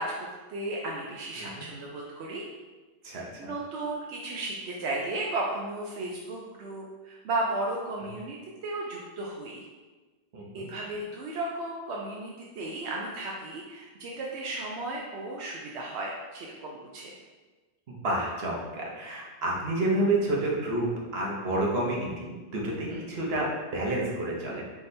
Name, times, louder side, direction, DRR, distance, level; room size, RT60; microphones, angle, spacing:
voice 1, 0.0-2.4 3.2-8.4 8.6-9.6 10.5-17.2 22.9-23.0, right 2 dB, 85° right, -2 dB, 0.9 m, -34 dB
voice 2, 3.0-3.5 10.3-10.7 17.9-24.6, right 1 dB, 70° right, -3 dB, 1.2 m, -29 dB
4.1 x 3.5 x 3.2 m, 1.3 s
omnidirectional pair, 1.1 m